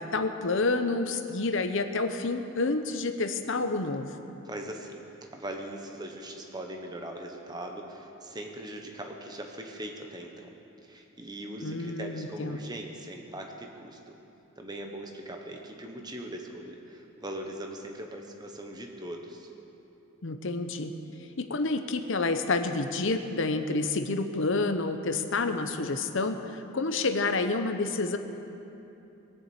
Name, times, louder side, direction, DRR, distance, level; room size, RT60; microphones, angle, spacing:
voice 1, 0.0-4.1 11.6-12.6 20.2-20.9 21.4-28.2, left 3 dB, 60° left, 8 dB, 0.8 m, -29 dB
voice 2, 4.4-5.1 5.3-10.5 10.8-14.0 14.6-19.5, right 1 dB, 20° right, 2 dB, 1.2 m, -40 dB
20.0 x 7.2 x 8.2 m, 2.9 s
head